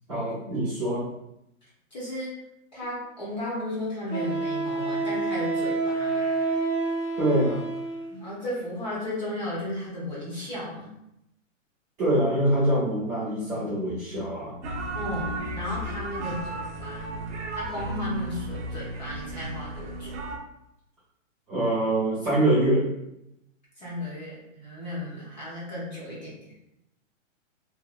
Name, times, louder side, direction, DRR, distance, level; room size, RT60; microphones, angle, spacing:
voice 1, 0.1-1.1 7.2-7.6 12.0-14.5 21.5-22.8, right 1 dB, 15° right, -13 dB, 0.8 m, -24 dB
voice 2, 1.9-2.4 2.7-6.2 8.1-10.9 14.9-17.1 17.5-20.1 23.8-26.5, left 1 dB, 35° left, -7 dB, 0.8 m, -34 dB
Wind instrument woodwind instrument, 2.8-2.9 4.1-8.2, right 3 dB, 60° left, 1.3 m, -28 dB
sound 1, 14.6-20.4, right 1 dB, 60° right, 0.5 m, -34 dB
2.7 x 2.3 x 2.3 m, 0.84 s
hypercardioid pair, 170°, 40 cm